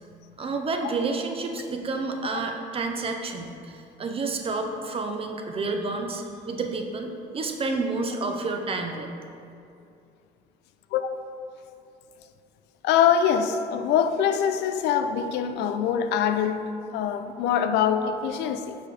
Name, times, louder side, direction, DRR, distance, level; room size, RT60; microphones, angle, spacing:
voice 1, 0.4-9.1, right 3 dB, 35° right, 0.6 m, -30 dB
voice 2, 12.8-16.6 16.9-18.8, left 8 dB, 85° left, 0.4 m, -24 dB
6.5 x 5.0 x 3.3 m
cardioid pair, 110°, 17 cm